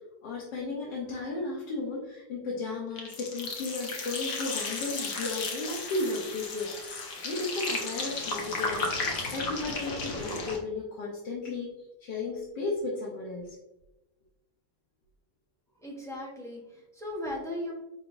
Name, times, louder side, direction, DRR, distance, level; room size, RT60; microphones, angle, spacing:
voice 1, 0.2-6.9 7.2-8.9 9.3-11.7 12.0-13.5, left 3 dB, 85° left, -4 dB, 1.5 m, -34 dB
sound 1, 3.0-10.6, left 3 dB, 60° left, 1.1 m, -34 dB
voice 2, 15.8-17.7, left 1 dB, 5° left, -3 dB, 0.5 m, -37 dB
4.7 x 4.0 x 2.5 m, 0.98 s
omnidirectional pair, 1.9 m